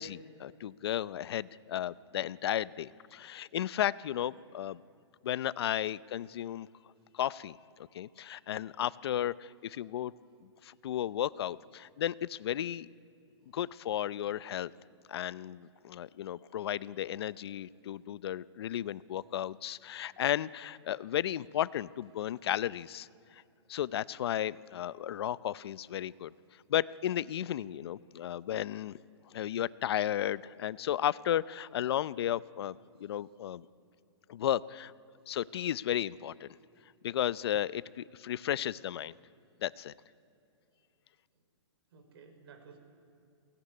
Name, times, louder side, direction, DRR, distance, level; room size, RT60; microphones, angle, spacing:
voice 1, 0.0-4.8 5.2-6.7 7.1-10.1 10.4-12.9 13.5-14.7 15.1-23.1 23.3-23.4 23.7-26.3 26.7-29.0 29.3-32.8 33.0-33.7 34.3-34.9 35.3-36.6 37.0-39.1 39.6-39.9, left 11 dB, 55° left, 18 dB, 0.6 m, -34 dB
voice 2, 41.9-42.8, right 5 dB, 55° right, 6 dB, 4.8 m, -58 dB
21.5 x 18.0 x 9.6 m, 2.5 s
hypercardioid pair, 155°, 15 cm